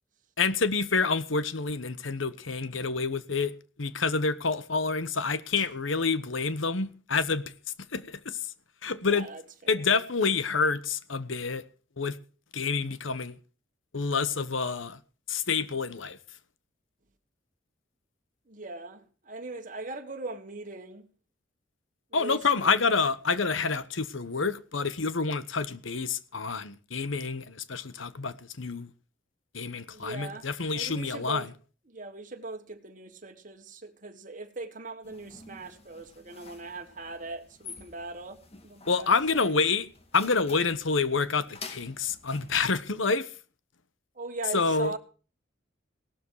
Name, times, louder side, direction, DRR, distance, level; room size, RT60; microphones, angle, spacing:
voice 1, 0.4-3.5 3.8-7.4 7.9-8.5 8.8-9.3 9.7-11.6 12.0-12.2 12.5-13.3 13.9-15.0 15.3-16.2 22.1-28.9 29.5-31.5 38.9-39.9 40.1-43.3 44.5-44.9, left 4 dB, 85° left, 1.2 m, -28 dB
voice 2, 8.8-9.8 18.5-21.1 22.1-22.8 29.9-31.5 31.9-39.6 44.1-45.0, right 2 dB, 40° right, 1.7 m, -40 dB
sound 1, 35.0-42.5, left 4 dB, 30° left, 2.1 m, -49 dB
17.5 x 12.5 x 4.8 m
head